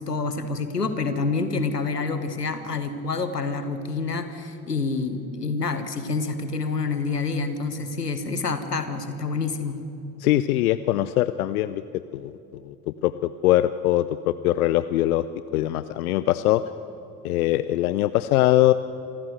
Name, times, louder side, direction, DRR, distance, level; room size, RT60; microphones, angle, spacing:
voice 1, 0.0-9.8, left 4 dB, 85° left, 10 dB, 1.3 m, -27 dB
voice 2, 10.2-11.8 12.1-12.3 12.6-12.7 13.0-15.3 15.5-16.6 17.2-18.7, left 14 dB, 65° left, 14 dB, 0.7 m, -22 dB
26.5 x 15.0 x 7.8 m, 3.0 s
figure-of-eight pair, 55°, 46 cm